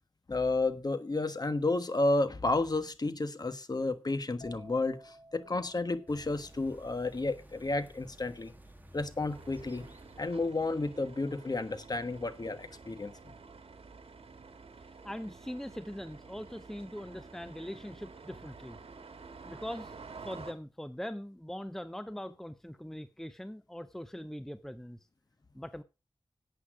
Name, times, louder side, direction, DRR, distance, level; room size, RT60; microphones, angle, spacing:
voice 1, 0.3-8.5 8.9-9.8 10.2-13.1, left 2 dB, 40° left, 1.3 m, -31 dB
sound 1, 4.4-12.0 12.3-12.7, equal, 60° left, 4.1 m, -57 dB
sound 2, 6.1-10.4, equal, 20° right, 1.9 m, -54 dB
sound 3, 9.3-20.5, right 4 dB, 80° right, 1.8 m, -50 dB
voice 2, 15.0-18.8 19.5-25.0 25.5-25.8, equal, 5° left, 0.7 m, -42 dB
11.5 x 8.4 x 4.9 m
wide cardioid pair, 85°, 10 cm